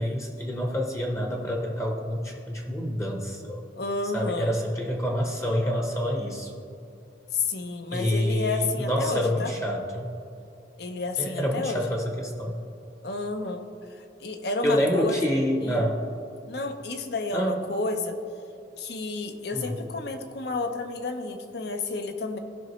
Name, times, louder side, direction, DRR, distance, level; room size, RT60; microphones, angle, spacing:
voice 1, 0.0-3.6 4.1-6.5 7.9-10.1 11.2-12.6 14.6-16.0 17.3-17.6 19.5-19.7, equal, 15° left, 1 dB, 0.8 m, -27 dB
voice 2, 3.8-4.6 7.3-9.5 10.8-11.8 13.0-13.6 14.2-15.2 15.6-15.9 16.5-18.2 18.8-22.4, left 3 dB, 60° left, 6 dB, 0.7 m, -30 dB
15.5 x 5.9 x 3.1 m, 2.6 s
head